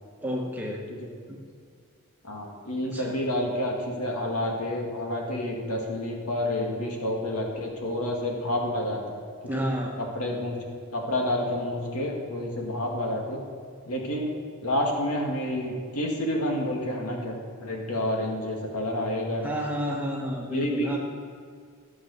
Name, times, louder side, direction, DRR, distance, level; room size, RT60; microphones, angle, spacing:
voice 1, 0.2-0.8 1.3-1.4 2.8-3.2 9.5-10.0 19.4-21.0, equal, 5° right, -1 dB, 1.3 m, -31 dB
voice 2, 2.2-9.0 10.1-10.6 10.9-13.4 13.8-14.3 14.6-19.5 20.5-20.9, left 1 dB, 90° left, 0 dB, 2.2 m, -29 dB
14.0 x 7.4 x 6.7 m, 2.3 s
head